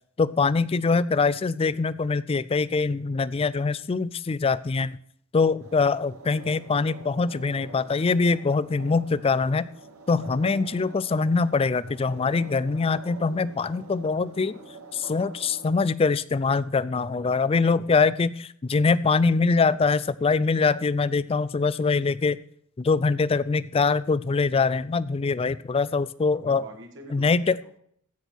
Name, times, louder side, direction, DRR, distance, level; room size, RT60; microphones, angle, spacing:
voice 1, 0.2-4.9 5.3-9.7 10.1-14.5 14.9-22.4 22.8-26.6 27.1-27.6, left 4 dB, 25° left, 18 dB, 0.3 m, -23 dB
sound 1, 5.6-15.8, right 3 dB, 80° right, 1.3 m, -46 dB
voice 2, 17.1-17.5 25.8-26.0 26.3-27.8, right 1 dB, 55° right, 1 dB, 1.6 m, -47 dB
16.0 x 6.3 x 4.3 m, 0.64 s
head